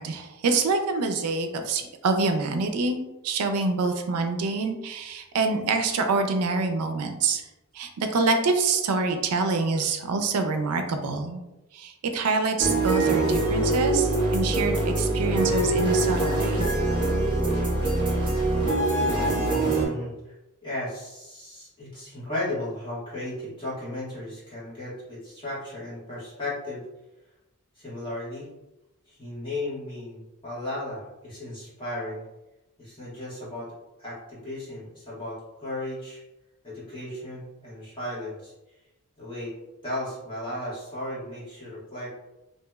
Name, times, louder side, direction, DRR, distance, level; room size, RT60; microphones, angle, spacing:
voice 1, 0.0-7.4 7.8-11.4 11.8-16.7, right 3 dB, 80° right, 6 dB, 0.4 m, -26 dB
sound 1, 12.6-19.9, right 2 dB, 25° right, 1.0 m, -24 dB
voice 2, 19.4-20.1 20.6-26.9 27.7-28.5 29.1-32.2 32.8-33.7 34.0-36.2 36.6-38.5 39.2-39.5 39.8-42.1, left 1 dB, 20° left, -9 dB, 1.4 m, -35 dB
2.9 x 2.6 x 2.3 m, 0.98 s
head